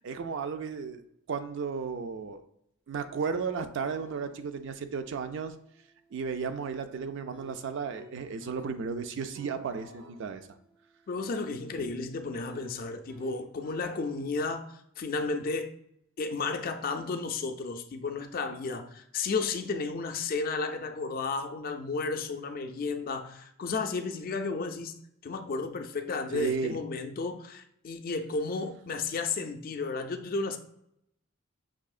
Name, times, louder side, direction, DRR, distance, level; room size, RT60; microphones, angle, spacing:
voice 1, 0.0-2.4 2.9-5.5 6.1-10.4 26.3-26.8, right 5 dB, 60° right, 0.4 m, -34 dB
sound 1, 3.7-8.7 9.1-13.8, equal, 90° right, 0.9 m, -55 dB
voice 2, 11.1-14.7 15.0-15.7 16.2-30.6, left 4 dB, 45° left, 0.4 m, -33 dB
6.0 x 2.7 x 2.4 m
head